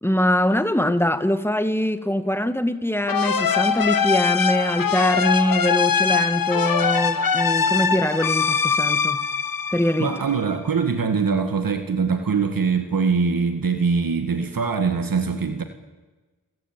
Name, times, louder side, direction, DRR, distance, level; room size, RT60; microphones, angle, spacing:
voice 1, 0.0-9.2 9.7-10.2, left 1 dB, 5° left, 10 dB, 1.9 m, -23 dB
sound 1, 3.1-10.5, left 6 dB, 75° left, 1.4 m, -22 dB
voice 2, 10.0-15.6, right 5 dB, 75° right, 7 dB, 1.9 m, -23 dB
30.0 x 15.0 x 9.3 m, 1.2 s
wide cardioid pair, 60°, 35 cm